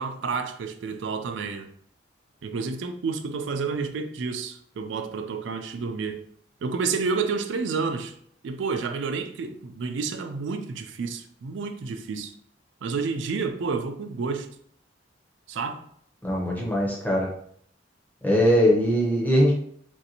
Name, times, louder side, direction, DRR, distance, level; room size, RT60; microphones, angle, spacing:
voice 1, 0.0-1.7 2.4-6.2 6.6-8.1 8.4-12.3 12.8-14.5 15.5-15.8, right 4 dB, 70° right, 0.3 m, -30 dB
voice 2, 16.2-17.3 18.2-19.5, equal, 10° left, 0.7 m, -21 dB
3.0 x 2.6 x 2.8 m
head